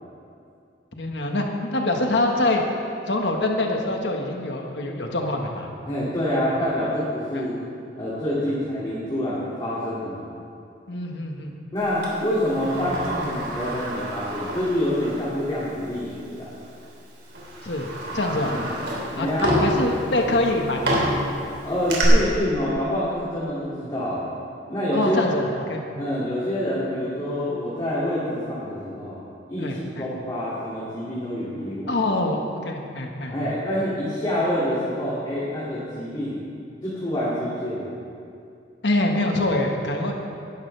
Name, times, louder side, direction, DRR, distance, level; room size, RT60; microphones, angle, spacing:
voice 1, 1.0-2.6 3.1-5.7 7.3-7.5 10.9-11.5 17.6-17.9 18.1-18.6 19.2-21.1 24.9-26.2 29.6-30.1 31.9-33.5 38.8-40.2, left 2 dB, 75° left, 2 dB, 1.5 m, -25 dB
voice 2, 5.9-7.6 8.0-10.3 11.7-16.5 18.5-18.6 19.2-19.6 21.6-24.2 24.7-25.4 26.0-29.2 29.5-31.9 33.3-36.4 36.8-37.9, equal, 25° left, -9 dB, 2.5 m, -26 dB
Sliding door, 12.0-15.3 15.6-15.7 16.7-16.9 17.3-22.0, equal, 75° right, 3.3 m, -29 dB
19.0 x 11.5 x 3.4 m, 2.5 s
head